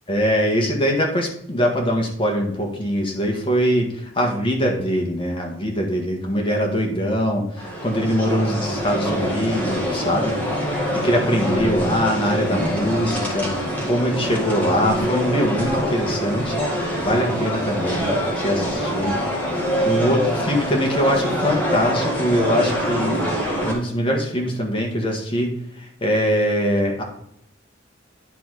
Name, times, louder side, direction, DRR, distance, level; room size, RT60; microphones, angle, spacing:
voice 1, 0.1-10.3 10.9-13.5 13.8-16.6 17.0-19.2 19.8-23.2 23.6-27.0, equal, 30° left, 1 dB, 1.7 m, -22 dB
sound 1, 7.6-23.7, equal, 10° left, 2.1 m, -24 dB
10.0 x 4.1 x 4.8 m, 0.72 s
head